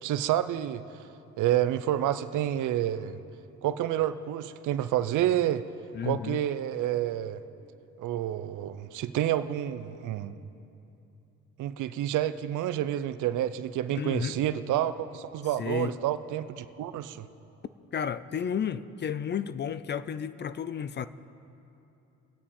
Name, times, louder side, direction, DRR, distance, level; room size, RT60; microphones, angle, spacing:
voice 1, 0.0-0.8 1.4-3.2 3.6-5.6 6.0-7.4 8.0-10.3 11.6-17.3, right 12 dB, 80° right, 0.6 m, -29 dB
voice 2, 5.9-6.4 13.9-14.3 15.6-16.0 17.9-21.1, left 7 dB, 35° left, 0.4 m, -32 dB
22.5 x 8.9 x 4.3 m
cardioid pair, 90°, 30 cm